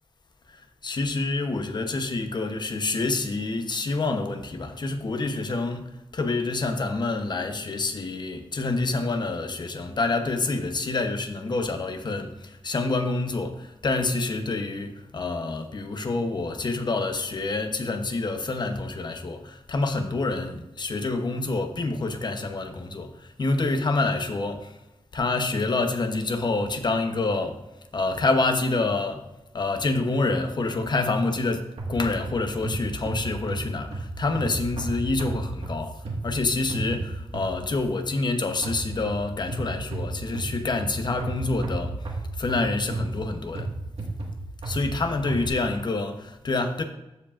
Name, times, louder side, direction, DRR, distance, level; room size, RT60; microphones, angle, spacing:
voice 1, 0.5-24.8 25.1-27.6 27.9-29.3 29.5-42.1 42.4-43.7 44.6-46.8, left 3 dB, 45° left, 0.9 m, -27 dB
sound 1, 31.8-37.8 38.6-45.5, right 2 dB, 90° right, 1.7 m, -34 dB
14.5 x 4.9 x 2.5 m
wide cardioid pair, 105°, 10 cm